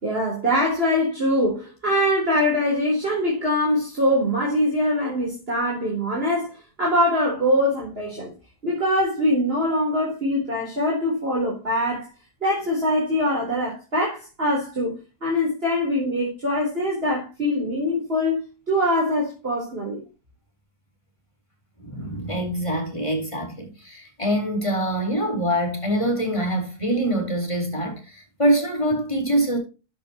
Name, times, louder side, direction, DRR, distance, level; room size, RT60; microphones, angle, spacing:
voice 1, 0.0-8.3 8.6-12.1 12.4-18.4 18.7-20.0, left 1 dB, 35° right, 4.3 m, -23 dB
voice 2, 21.8-29.6, right 1 dB, 20° left, 4.5 m, -24 dB
14.5 x 8.2 x 3.0 m
omnidirectional pair, 1.7 m